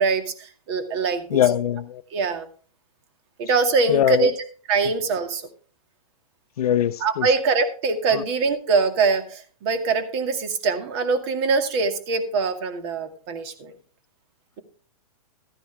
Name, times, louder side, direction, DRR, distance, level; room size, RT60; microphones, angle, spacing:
voice 1, 0.0-1.4 2.1-2.5 3.4-5.4 7.0-13.7, right 4 dB, 45° right, 8 dB, 2.2 m, -23 dB
voice 2, 1.3-2.0 3.9-4.3 6.6-7.3, left 10 dB, 75° left, 15 dB, 0.7 m, -21 dB
14.0 x 10.5 x 3.4 m, 0.39 s
hypercardioid pair, 140°, 19 cm